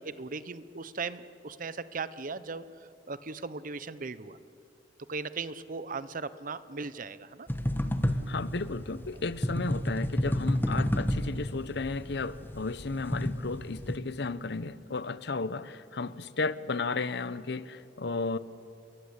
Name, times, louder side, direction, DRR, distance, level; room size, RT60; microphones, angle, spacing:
voice 1, 0.0-4.4 5.1-7.5, right 4 dB, 50° right, 0.9 m, -38 dB
sound 1, 7.5-14.0, equal, 10° left, 1.3 m, -30 dB
voice 2, 8.3-18.4, left 3 dB, 70° left, 0.8 m, -34 dB
28.5 x 22.5 x 8.2 m
head